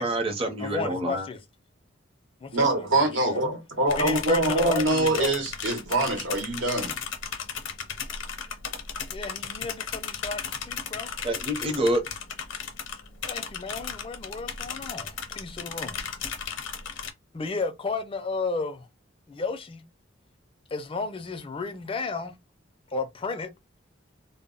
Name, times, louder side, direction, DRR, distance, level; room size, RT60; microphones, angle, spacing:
voice 1, 0.0-1.3 11.2-12.0, right 1 dB, 30° right, 0.6 m, -27 dB
voice 2, 0.6-1.4 2.4-3.4 4.0-5.3 9.1-11.1 13.3-16.0 17.3-18.9 19.3-19.8 20.7-22.4 22.9-23.5, left 3 dB, 30° left, 0.4 m, -33 dB
voice 3, 2.5-7.0, right 2 dB, 75° right, 0.9 m, -24 dB
sound 1, 3.9-17.1, left 6 dB, 75° left, 0.6 m, -35 dB
2.0 x 2.0 x 3.7 m
head